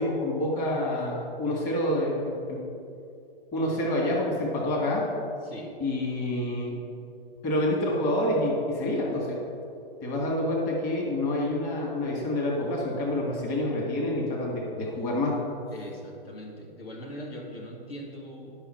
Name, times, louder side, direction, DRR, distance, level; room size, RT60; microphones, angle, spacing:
voice 1, 0.0-2.6 3.5-5.1 5.8-6.8 7.4-9.4 10.0-15.4, left 1 dB, 25° left, -2 dB, 1.9 m, -27 dB
voice 2, 5.4-5.7 15.7-18.5, equal, 75° left, -1 dB, 2.0 m, -41 dB
11.0 x 6.0 x 4.4 m, 2.5 s
hypercardioid pair, 135°, 30 cm